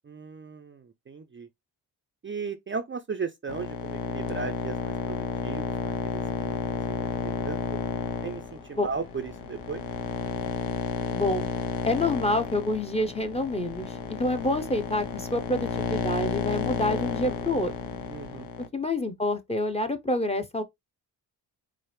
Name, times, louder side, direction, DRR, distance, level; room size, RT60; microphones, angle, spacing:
voice 1, 0.0-1.5 2.2-5.2 5.4-6.6 7.0-7.8 8.2-9.8 18.1-18.5, right 5 dB, 30° right, 0.5 m, -36 dB
sound 1, 3.5-18.7, left 6 dB, 70° left, 0.8 m, -32 dB
sound 2, 6.7-18.5, left 2 dB, 50° left, 2.2 m, -48 dB
voice 2, 11.1-11.5 11.8-17.7 18.7-20.6, left 1 dB, 15° left, 0.7 m, -27 dB
4.7 x 2.0 x 3.2 m
supercardioid pair, 50°, 44 cm